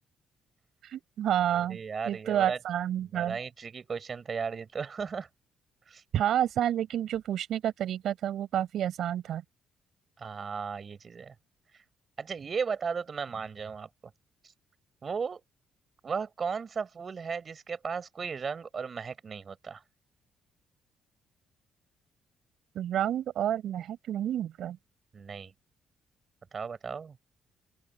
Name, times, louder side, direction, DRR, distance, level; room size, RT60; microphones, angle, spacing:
voice 1, 0.8-1.8 2.1-3.4 6.1-9.4 22.7-24.8, right 11 dB, 75° right, 7.6 m, -29 dB
voice 2, 1.5-2.6 3.0-5.3 5.8-6.0 10.2-11.3 11.7-11.8 12.2-13.9 14.4-14.5 15.0-15.4 16.0-19.8 25.1-25.5 26.5-27.2, right 5 dB, 45° right, 4.9 m, -35 dB
open air
cardioid pair, 90°, 0 cm